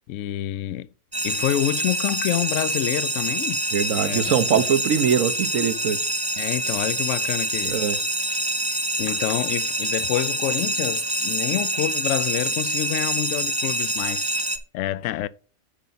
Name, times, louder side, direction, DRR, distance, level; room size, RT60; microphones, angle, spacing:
voice 1, 0.1-0.9 1.2-3.6 4.0-4.6 6.4-7.8 8.7-14.3 14.7-15.3, left 13 dB, 70° left, 0.9 m, -27 dB
sound 1, 1.1-14.6, right 1 dB, 20° right, 0.7 m, -26 dB
voice 2, 3.7-6.0 7.7-8.0, right 8 dB, 70° right, 1.2 m, -22 dB
10.0 x 5.2 x 4.0 m
omnidirectional pair, 1.5 m